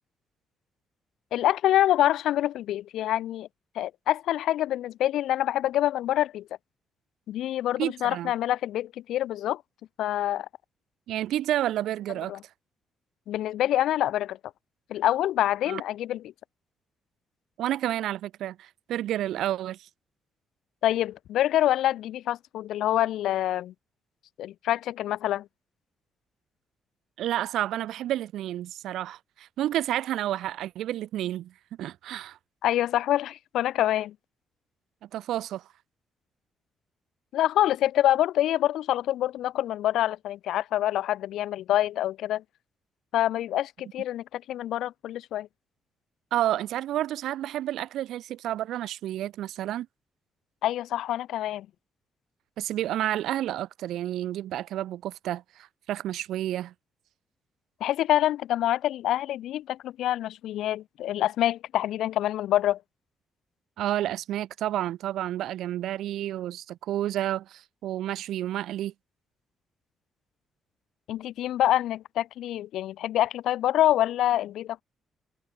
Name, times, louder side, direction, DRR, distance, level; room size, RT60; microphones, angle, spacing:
voice 1, 1.3-3.5 3.8-6.5 7.3-9.6 10.0-10.5 12.3-12.4 13.3-14.4 14.9-16.2 20.8-23.7 24.4-25.5 32.6-34.1 37.3-42.4 43.1-45.5 50.6-51.7 57.8-62.8 71.1-74.8, left 13 dB, 85° left, 2.2 m, -26 dB
voice 2, 7.8-8.3 11.1-12.4 15.7-15.8 17.6-19.9 27.2-31.5 31.8-32.4 35.0-35.7 46.3-49.9 52.6-56.7 63.8-68.9, right 13 dB, 85° right, 3.1 m, -30 dB
cardioid pair, 100°, 0 cm